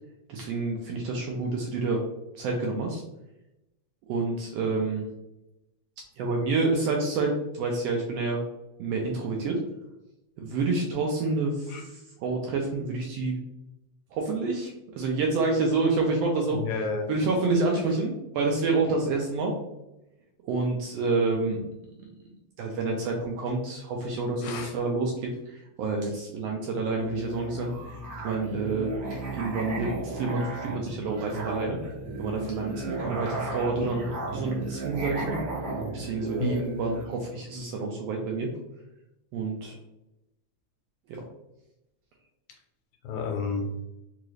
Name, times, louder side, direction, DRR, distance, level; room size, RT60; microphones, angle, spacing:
voice 1, 0.3-2.0 2.3-3.0 4.1-5.1 6.2-8.4 8.8-9.6 10.4-13.4 14.1-16.8 17.1-19.5 20.4-21.6 22.6-27.7 28.2-31.8 32.2-35.4 35.9-38.5 39.3-39.8 41.1-41.2, right 3 dB, 80° right, 0 dB, 1.5 m, -28 dB
voice 2, 16.5-17.1 24.4-24.7 36.4-36.6 43.0-43.7, left 4 dB, 85° left, 2 dB, 2.0 m, -31 dB
Musical instrument, 27.0-37.1, right 2 dB, 65° right, 0.9 m, -35 dB
4.6 x 2.5 x 3.1 m, 0.91 s
omnidirectional pair, 3.3 m